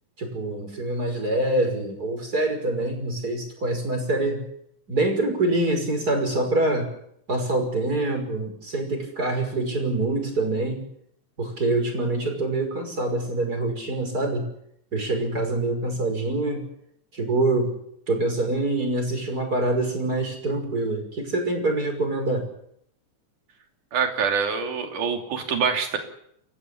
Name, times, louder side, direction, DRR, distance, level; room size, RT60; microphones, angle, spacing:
voice 1, 0.2-4.4 4.9-6.9 7.3-10.8 11.4-14.5 14.9-16.6 17.1-17.8 18.1-22.5, right 2 dB, 25° right, 4 dB, 6.2 m, -25 dB
voice 2, 23.9-26.0, right 6 dB, 75° right, 4 dB, 4.4 m, -25 dB
28.0 x 15.0 x 8.6 m, 0.71 s
omnidirectional pair, 3.7 m